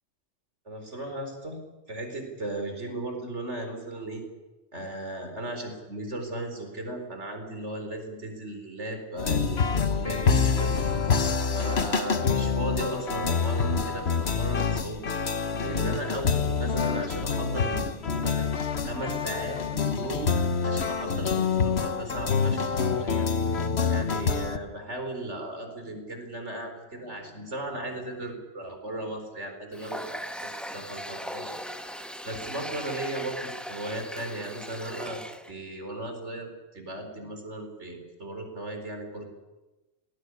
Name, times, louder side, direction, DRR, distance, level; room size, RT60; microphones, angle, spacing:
voice 1, 0.7-1.6 1.9-4.2 4.7-10.8 11.5-15.0 15.6-18.5 18.8-20.3 20.6-23.3 23.9-30.0 30.4-31.5 31.8-35.2 35.5-39.2, right 1 dB, 75° right, 4 dB, 4.7 m, -36 dB
sound 1, 9.2-24.6, left 5 dB, 65° left, 1.5 m, -26 dB
Water tap faucet, 29.7-35.5, equal, ahead, 1.3 m, -38 dB
20.0 x 17.5 x 9.8 m, 1.1 s
omnidirectional pair, 1.2 m